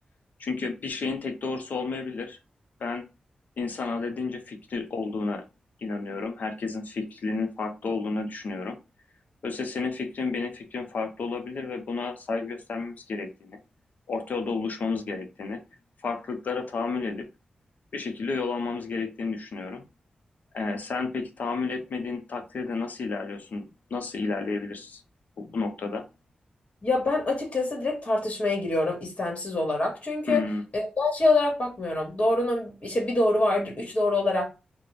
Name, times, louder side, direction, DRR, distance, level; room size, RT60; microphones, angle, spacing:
voice 1, 0.4-2.4 2.8-3.1 3.6-5.4 5.8-8.8 9.4-13.6 14.1-15.6 16.0-17.3 17.9-19.8 20.5-25.0 25.4-26.0 30.3-30.6, left 4 dB, 70° left, 0.6 m, -31 dB
voice 2, 26.8-30.5 30.7-34.5, left 2 dB, 45° left, 1.3 m, -25 dB
2.4 x 2.1 x 3.1 m
supercardioid pair, 40°, 3 cm